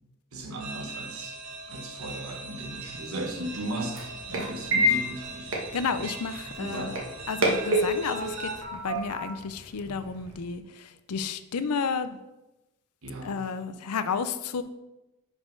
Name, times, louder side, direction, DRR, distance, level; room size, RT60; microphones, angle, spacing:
voice 1, 0.3-1.4 1.7-5.5 6.6-7.0 13.0-13.3, right 1 dB, 75° right, 3 dB, 1.1 m, -36 dB
sound 1, 0.6-8.6, right 4 dB, 90° right, 1.3 m, -41 dB
sound 2, 2.5-10.4, right 1 dB, 60° right, 1.4 m, -31 dB
voice 2, 5.7-7.0 7.3-12.2 13.2-14.6, left 5 dB, 90° left, 11 dB, 0.5 m, -32 dB
5.3 x 5.1 x 5.2 m, 0.99 s
head